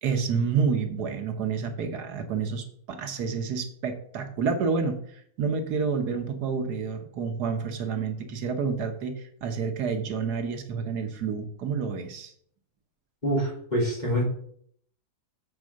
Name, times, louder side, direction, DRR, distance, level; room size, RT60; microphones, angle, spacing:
voice 1, 0.0-12.3, right 5 dB, 80° right, 6 dB, 1.6 m, -29 dB
voice 2, 13.2-14.2, equal, 25° left, -4 dB, 3.4 m, -26 dB
7.5 x 4.8 x 6.3 m, 0.63 s
omnidirectional pair, 1.7 m